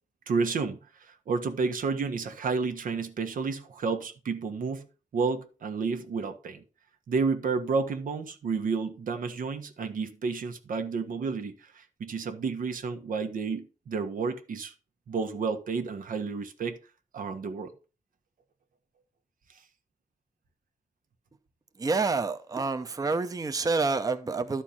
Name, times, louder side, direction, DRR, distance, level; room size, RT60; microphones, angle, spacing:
voice 1, 0.3-4.8 5.1-6.6 7.1-14.7 15.1-16.8 17.1-17.7, right 4 dB, 85° right, 1.3 m, -31 dB
voice 2, 21.8-24.6, right 4 dB, 25° right, 0.7 m, -28 dB
12.0 x 4.6 x 5.7 m
wide cardioid pair, 130°, 14 cm